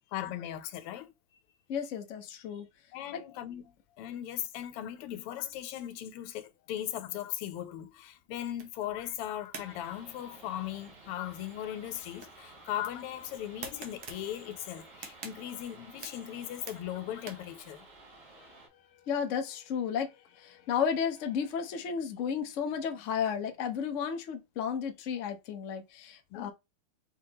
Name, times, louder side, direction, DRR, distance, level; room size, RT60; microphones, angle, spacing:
voice 1, 0.1-1.1 2.9-17.8 26.3-26.5, left 11 dB, 90° left, 1.6 m, -38 dB
voice 2, 1.7-2.7 3.1-3.2 18.4-18.5 19.0-26.5, left 7 dB, 70° left, 0.7 m, -33 dB
sound 1, 8.5-17.6, right 5 dB, 55° right, 1.3 m, -50 dB
sound 2, 9.5-18.7, right 3 dB, 85° right, 2.4 m, -54 dB
4.9 x 3.7 x 2.8 m
omnidirectional pair, 2.4 m